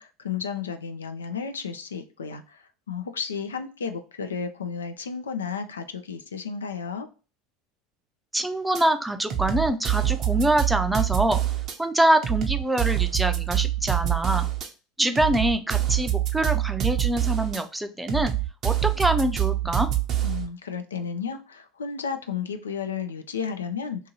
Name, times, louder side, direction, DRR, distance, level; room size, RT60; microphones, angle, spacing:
voice 1, 0.0-7.1 20.2-24.1, left 6 dB, 85° left, 8 dB, 0.4 m, -33 dB
voice 2, 8.3-11.4 11.8-14.5 15.0-18.3 18.6-19.9, right 1 dB, 10° right, 8 dB, 0.5 m, -24 dB
sound 1, 8.8-8.9 9.3-11.8 12.2-14.7 15.2-17.6 18.1-20.5, right 13 dB, 45° right, 0.7 m, -25 dB
2.7 x 2.6 x 2.8 m, 0.34 s
hypercardioid pair, 80°, 0 cm